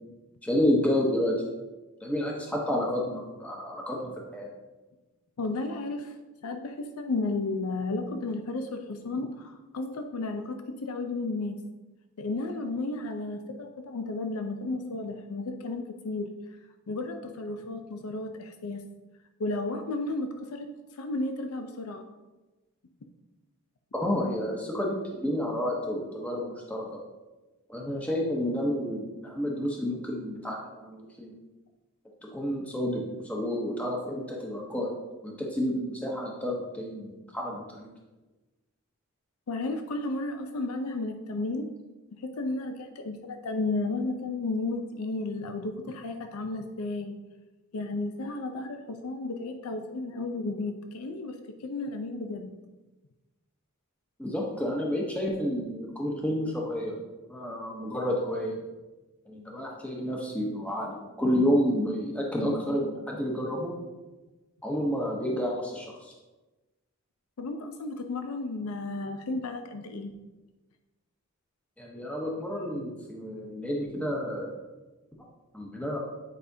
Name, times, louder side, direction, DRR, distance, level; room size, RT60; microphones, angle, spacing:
voice 1, 0.4-1.3 2.0-4.5 23.9-27.0 27.7-31.3 32.3-35.0 35.2-37.9 54.2-57.0 57.3-58.6 59.3-63.7 64.6-66.1 71.8-74.5 75.5-76.0, equal, 5° left, -2 dB, 0.8 m, -30 dB
voice 2, 5.4-6.1 6.4-11.6 12.2-16.3 16.9-18.8 19.4-22.1 39.5-41.7 42.1-47.2 47.7-52.5 67.4-70.1, left 2 dB, 80° left, 6 dB, 0.5 m, -33 dB
9.2 x 4.9 x 2.7 m, 1.1 s
head